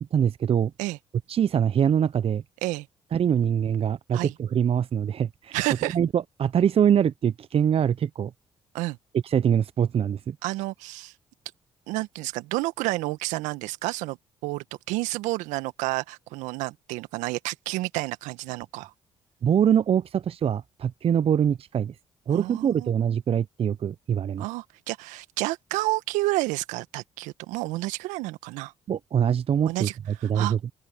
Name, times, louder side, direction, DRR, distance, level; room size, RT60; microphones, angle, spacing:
voice 1, 0.1-0.7 1.3-2.4 3.1-5.6 5.9-8.3 9.2-10.4 19.4-21.9 22.3-24.5 28.9-29.9 30.2-30.6, right 8 dB, 50° right, 0.8 m, -23 dB
voice 2, 5.5-6.0 8.7-9.0 10.4-11.1 11.9-14.2 14.4-18.9 22.3-22.9 24.4-28.7 29.7-30.6, right 20 dB, 75° right, 1.7 m, -30 dB
open air
hypercardioid pair, 50°, 13 cm